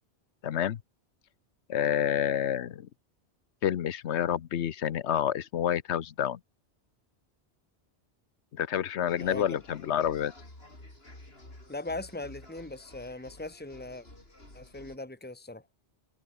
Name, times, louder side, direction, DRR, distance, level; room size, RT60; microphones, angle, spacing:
voice 1, 0.4-0.8 1.7-2.9 3.6-6.4 8.5-10.3, left 10 dB, 80° left, 1.1 m, -28 dB
sound 1, 9.1-15.0, left 1 dB, 60° left, 6.3 m, -51 dB
voice 2, 11.7-14.1 14.5-15.6, left 2 dB, 10° left, 2.1 m, -39 dB
omnidirectional pair, 1.1 m